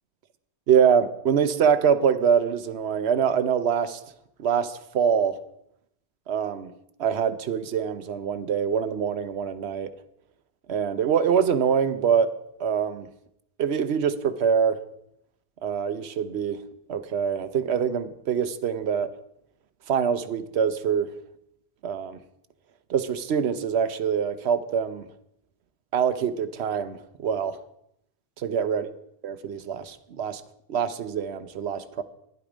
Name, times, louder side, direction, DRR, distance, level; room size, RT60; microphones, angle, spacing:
voice 1, 0.7-4.0 4.4-5.4 6.3-6.7 7.0-9.9 10.7-12.3 12.6-13.1 13.6-14.8 15.6-16.6 16.9-19.1 19.9-21.1 21.8-22.2 22.9-25.1 25.9-27.6 28.4-28.9 29.2-30.4 30.7-32.0, right 7 dB, 75° right, 13 dB, 1.0 m, -24 dB
12.0 x 10.5 x 5.0 m, 0.78 s
omnidirectional pair, 1.1 m